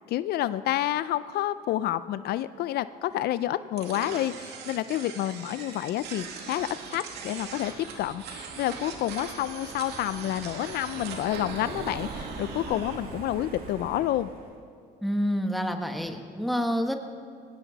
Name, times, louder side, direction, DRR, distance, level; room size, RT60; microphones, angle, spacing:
voice 1, 0.1-7.7 8.0-14.3, left 13 dB, 70° left, 14 dB, 0.5 m, -29 dB
sound 1, 3.8-13.0, right 5 dB, 80° right, 2.4 m, -41 dB
Car passing by, 6.0-14.6, right 4 dB, 55° right, 2.4 m, -43 dB
voice 2, 15.0-16.9, equal, ahead, 4 dB, 1.4 m, -28 dB
19.5 x 17.5 x 4.1 m, 2.4 s
cardioid pair, 110°, 17 cm